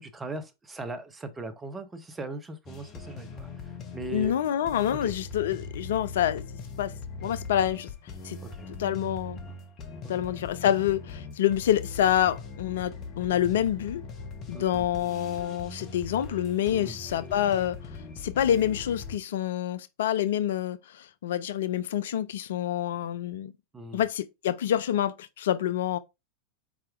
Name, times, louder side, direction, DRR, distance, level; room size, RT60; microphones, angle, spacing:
voice 1, 0.0-4.4 4.9-5.1 8.4-8.7 10.0-10.1 14.5-15.1 16.7-17.0 23.7-24.0, right 2 dB, 15° right, 0.8 m, -39 dB
sound 1, 2.7-19.2, left 4 dB, 35° left, 0.9 m, -41 dB
voice 2, 4.1-6.4 6.8-6.9 7.2-7.9 8.2-8.4 8.8-9.4 10.1-14.0 14.5-17.8 18.2-23.5 23.9-26.0, left 11 dB, 60° left, 0.3 m, -27 dB
4.9 x 4.5 x 2.4 m
figure-of-eight pair, 90°, 0 cm